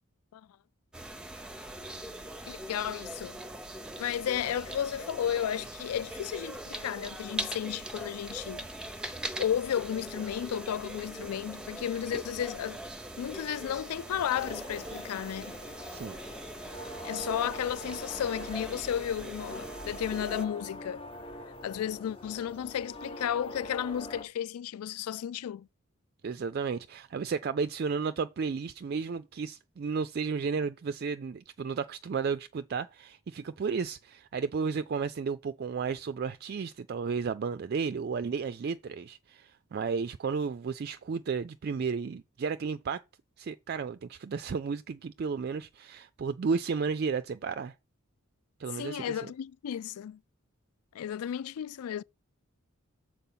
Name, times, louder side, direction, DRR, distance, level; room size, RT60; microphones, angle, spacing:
sound 1, 0.9-20.4, right 1 dB, 5° right, 0.7 m, -41 dB
voice 1, 2.5-3.4 4.0-8.7 9.4-12.8 13.2-15.6 17.0-21.1 21.6-25.7 48.7-50.2 50.9-52.0, left 9 dB, 90° left, 0.3 m, -33 dB
sound 2, 14.3-24.2, equal, 25° left, 0.9 m, -44 dB
voice 2, 26.2-43.0 43.4-47.7 48.6-49.2, right 5 dB, 45° right, 0.3 m, -33 dB
6.9 x 4.6 x 5.7 m
head